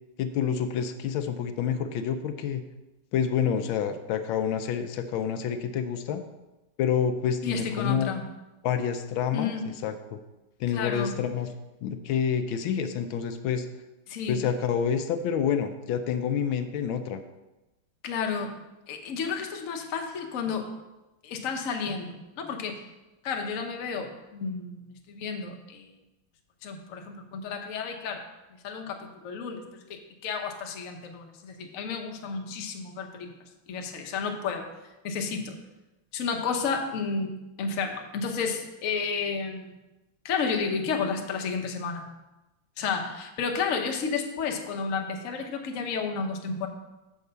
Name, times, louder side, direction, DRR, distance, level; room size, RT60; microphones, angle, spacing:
voice 1, 0.2-2.6 3.1-6.2 6.8-8.1 8.6-10.2 10.6-11.5 11.8-13.7 14.3-17.2, left 7 dB, 80° left, 8 dB, 1.4 m, -28 dB
voice 2, 7.4-8.2 9.3-9.7 10.7-11.2 14.1-14.4 18.0-18.6 18.9-20.7 21.2-22.8 23.2-25.9 26.6-28.2 28.6-33.3 33.7-34.7 35.0-35.6 36.1-37.3 37.6-39.7 40.2-42.0 42.8-46.7, left 5 dB, 55° left, 3 dB, 1.0 m, -31 dB
6.4 x 4.7 x 6.7 m, 1.0 s
omnidirectional pair, 2.2 m